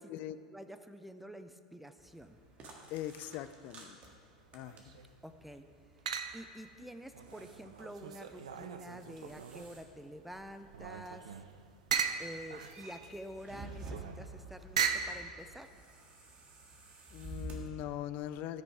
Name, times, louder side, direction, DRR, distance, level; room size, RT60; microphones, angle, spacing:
voice 1, 0.5-2.4 5.2-5.7 6.3-11.3 12.2-15.7, equal, 5° right, 9 dB, 0.5 m, -48 dB
sound 1, 2.0-17.6, right 1 dB, 40° right, 1.6 m, -52 dB
voice 2, 2.9-4.0 4.5-5.0 17.1-18.6, left 12 dB, 50° left, 13 dB, 0.4 m, -41 dB
sound 2, 4.5-5.1 6.1-6.6 7.1-9.8 10.3-15.2, right 7 dB, 75° right, 0.5 m, -38 dB
13.0 x 5.2 x 4.7 m, 2.1 s
hypercardioid pair, 85°, 4 cm